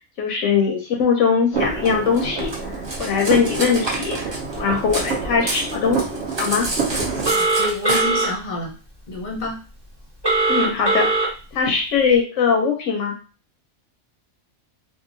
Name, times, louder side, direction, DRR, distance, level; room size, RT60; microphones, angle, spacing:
voice 1, 0.2-2.5 3.0-6.0 6.4-6.7 10.5-11.2 11.5-13.2, left 6 dB, 85° left, 2 dB, 0.9 m, -21 dB
sound 1, 1.5-7.3, right 4 dB, 65° right, 1.0 m, -28 dB
Cutlery silverware, 1.8-5.1 5.4-8.0, right 2 dB, 35° right, 0.4 m, -29 dB
Telephone, 7.2-8.3 10.2-11.3, right 3 dB, 20° right, 1.1 m, -19 dB
voice 2, 7.3-8.7 9.1-9.6, left 1 dB, 45° left, -1 dB, 0.7 m, -28 dB
2.8 x 2.4 x 2.5 m, 0.34 s
omnidirectional pair, 1.3 m